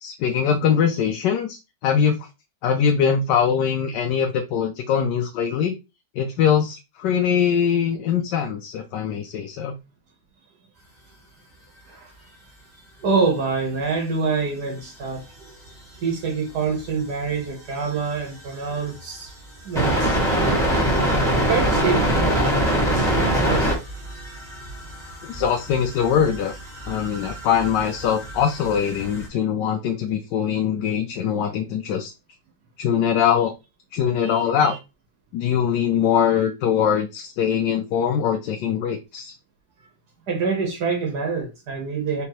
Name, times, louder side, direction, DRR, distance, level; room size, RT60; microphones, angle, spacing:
voice 1, 0.0-2.2 2.6-5.7 6.2-9.8 25.2-26.6 26.9-32.1 32.8-33.5 33.9-34.8 35.3-39.3, left 8 dB, 80° left, 1.2 m, -22 dB
voice 2, 11.9-12.3 13.0-15.2 16.0-19.3 19.6-20.7 21.3-23.8 34.2-34.8 40.3-42.2, right 5 dB, 65° right, 1.6 m, -26 dB
sound 1, 15.7-15.8 18.9-19.0 19.7-29.3, right 1 dB, ahead, 1.6 m, -24 dB
4.6 x 3.7 x 2.9 m
omnidirectional pair, 1.9 m